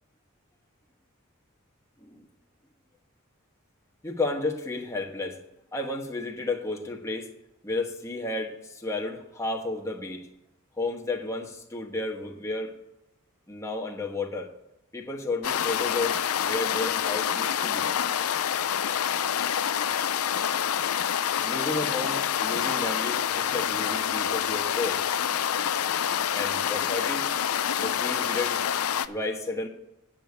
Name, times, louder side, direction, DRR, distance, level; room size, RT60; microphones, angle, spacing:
voice 1, 4.0-5.4 5.7-7.3 7.6-10.3 10.8-12.7 13.5-14.5 14.9-17.9 21.4-25.0 26.3-27.3 27.8-28.6 29.1-29.7, left 2 dB, 15° left, 1 dB, 1.2 m, -32 dB
sound 1, 15.4-29.1, left 9 dB, 75° left, 0.5 m, -27 dB
9.3 x 6.7 x 8.4 m, 0.90 s
head